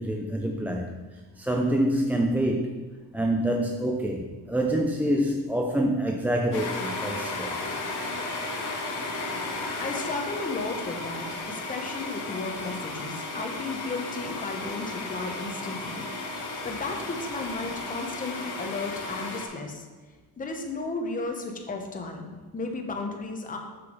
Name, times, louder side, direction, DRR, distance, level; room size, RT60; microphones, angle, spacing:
voice 1, 0.0-2.8 3.1-7.7, right 1 dB, 5° right, 1 dB, 0.4 m, -26 dB
sound 1, 6.5-19.5, left 2 dB, 90° left, 1.6 m, -34 dB
voice 2, 9.8-16.1 16.4-19.9 20.4-23.6, left 3 dB, 20° left, 2 dB, 1.0 m, -34 dB
6.4 x 6.1 x 5.3 m, 1.3 s
cardioid pair, 130°, 38 cm